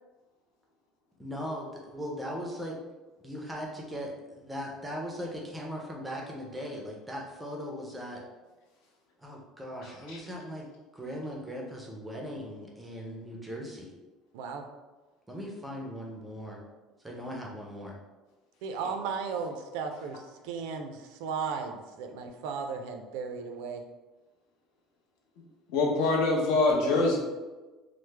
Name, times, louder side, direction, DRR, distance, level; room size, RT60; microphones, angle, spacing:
voice 1, 1.2-2.7 3.2-8.2 9.2-10.7 10.9-13.9 15.3-16.6 17.0-17.9, equal, 5° right, -1 dB, 0.4 m, -39 dB
voice 2, 14.3-14.6 18.6-23.8, right 5 dB, 80° right, 5 dB, 0.4 m, -35 dB
voice 3, 25.7-27.2, left 3 dB, 70° left, -1 dB, 0.7 m, -24 dB
3.1 x 2.0 x 3.2 m, 1.2 s
cardioid pair, 175°, 0 cm